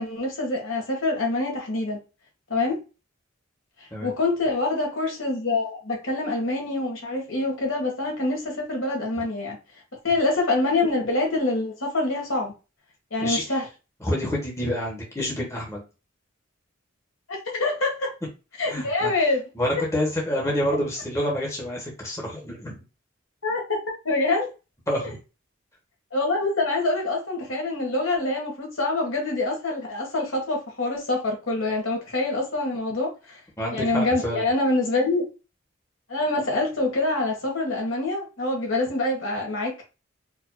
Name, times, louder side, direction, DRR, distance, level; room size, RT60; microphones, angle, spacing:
voice 1, 0.0-2.0 2.5-2.8 4.0-9.6 10.0-12.5 13.1-13.7 17.5-18.1 18.6-19.4 19.7-19.8 23.4-23.8 24.0-24.5 25.0-25.1 26.1-33.4 33.7-35.3 36.1-39.8, left 2 dB, 75° left, 1.7 m, -25 dB
voice 2, 13.2-13.6 14.0-15.8 18.7-19.1 19.5-22.8 24.9-25.2 33.6-34.4, equal, 15° left, 1.2 m, -28 dB
4.7 x 2.8 x 2.3 m
head